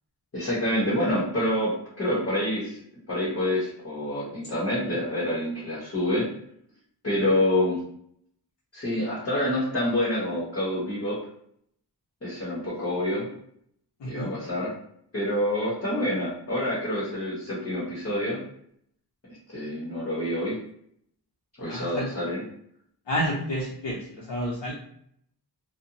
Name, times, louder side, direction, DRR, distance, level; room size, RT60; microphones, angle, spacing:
voice 1, 0.3-2.8 3.1-6.3 7.0-7.8 8.7-11.2 12.2-13.3 14.1-14.7 15.1-18.4 19.5-20.6 21.6-22.4, left 1 dB, 35° left, -8 dB, 0.9 m, -27 dB
voice 2, 21.7-22.1 23.1-24.7, equal, 85° left, -5 dB, 0.7 m, -30 dB
2.5 x 2.1 x 2.8 m, 0.68 s
wide cardioid pair, 110°, 42 cm